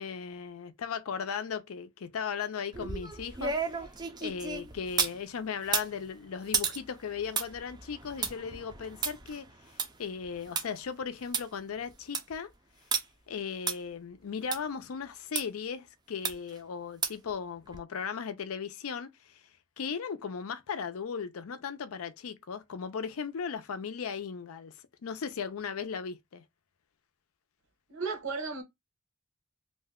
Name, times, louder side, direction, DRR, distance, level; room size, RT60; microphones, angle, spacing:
voice 1, 0.0-3.9 4.2-9.5 10.0-12.5 13.3-19.4 19.8-24.7 25.0-26.4, left 6 dB, 85° left, 0.5 m, -37 dB
sound 1, 2.7-5.2 5.6-10.6 11.0-11.1 11.3-11.4 11.9-12.3 12.9-13.0 13.7-13.8 14.5-14.6 15.3-15.4 16.2-16.6 17.0-17.3 17.7-17.8, right 5 dB, 20° right, 0.4 m, -33 dB
voice 2, 27.9-28.6, right 4 dB, 80° right, 0.9 m, -34 dB
2.6 x 2.2 x 3.5 m
head